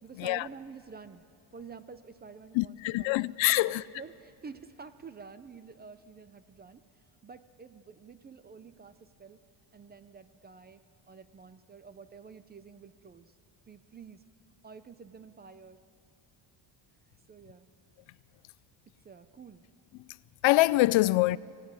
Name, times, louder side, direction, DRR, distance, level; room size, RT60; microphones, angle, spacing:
voice 1, 0.0-1.2 1.5-3.3 3.5-6.8 7.2-9.4 9.7-10.8 11.1-13.3 13.7-14.2 14.6-15.8 17.3-17.7 19.0-19.6, right 5 dB, 20° right, 0.5 m, -49 dB
voice 2, 2.5-3.8 20.4-21.4, left 19 dB, 70° left, 0.5 m, -24 dB
25.0 x 17.5 x 9.6 m
cardioid pair, 170°, 48 cm